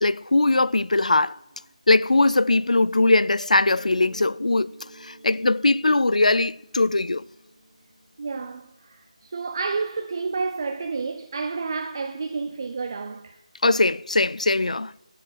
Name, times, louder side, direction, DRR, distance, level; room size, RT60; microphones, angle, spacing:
voice 1, 0.0-1.4 1.9-4.7 5.0-7.2 13.6-14.9, left 2 dB, 85° left, 0.4 m, -20 dB
Mallet percussion, 3.7-9.2, right 3 dB, ahead, 4.2 m, -50 dB
voice 2, 8.2-13.4, right 4 dB, 40° right, 0.6 m, -30 dB
13.0 x 7.4 x 6.0 m
figure-of-eight pair, 165°, 4 cm